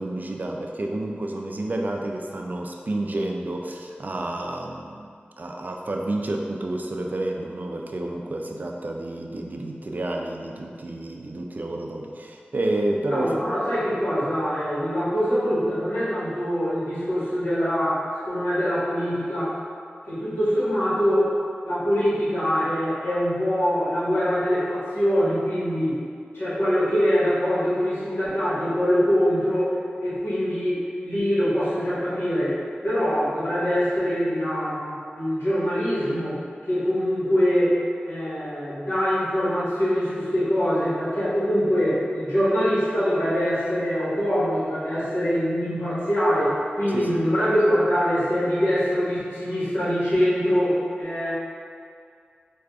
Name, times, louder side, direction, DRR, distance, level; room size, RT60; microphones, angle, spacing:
voice 1, 0.0-5.1 5.4-13.4 46.9-47.3, right 1 dB, 50° right, 1 dB, 0.3 m, -30 dB
voice 2, 13.1-19.6 20.1-21.3 21.6-26.0 26.3-29.7 30.0-32.6 32.8-36.4 36.7-51.3, equal, 85° left, -11 dB, 1.3 m, -23 dB
4.6 x 2.4 x 2.3 m, 2.2 s
wide cardioid pair, 60°, 4 cm